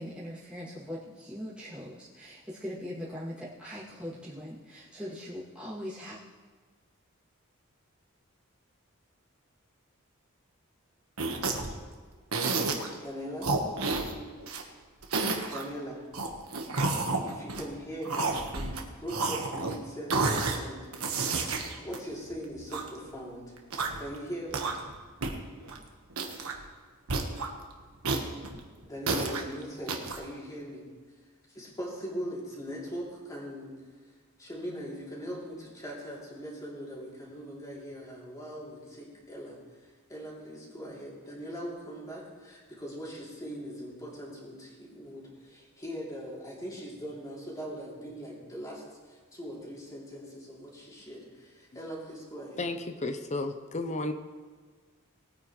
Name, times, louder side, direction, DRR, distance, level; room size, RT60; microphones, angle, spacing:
voice 1, 0.0-6.2, equal, 5° right, -10 dB, 2.5 m, -41 dB
sound 1, 11.2-11.8 12.3-12.9 13.4-14.6 15.0-15.6 16.1-17.7 18.0-18.8 19.1-19.8 20.1-20.6 20.9-22.9 23.6-24.1 24.5-25.0 25.2-25.3 25.6-25.8 26.1-26.6 27.1-27.5 28.0-29.4 29.9-30.2, right 3 dB, 85° right, 1.5 m, -30 dB
voice 2, 13.0-13.5 15.4-16.0 17.2-20.9 21.8-23.5 24.0-24.7 28.8-30.8 31.5-33.7 34.4-39.6 40.1-52.6, equal, 15° left, -5 dB, 3.1 m, -40 dB
voice 3, 52.6-54.1, left 2 dB, 35° left, 7 dB, 0.8 m, -33 dB
20.0 x 9.3 x 3.2 m, 1.5 s
head